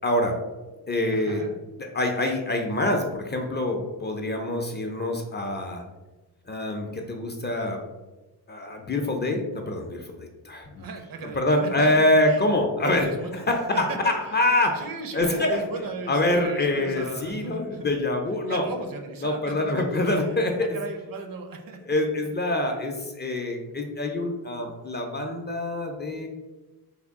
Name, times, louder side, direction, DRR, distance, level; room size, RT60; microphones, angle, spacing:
voice 1, 0.0-0.4 0.9-1.4 1.8-5.8 6.5-7.8 8.5-10.8 11.2-13.1 13.5-14.9 15.1-15.6 16.1-18.6 19.2-20.8 21.9-26.3, left 1 dB, 30° left, 2 dB, 0.4 m, -25 dB
voice 2, 0.9-1.5 10.8-12.5 12.8-13.4 13.7-14.4 14.7-17.9 18.5-21.8, right 4 dB, 60° right, 5 dB, 0.6 m, -37 dB
3.4 x 2.2 x 3.5 m, 1.1 s
wide cardioid pair, 105°, 39 cm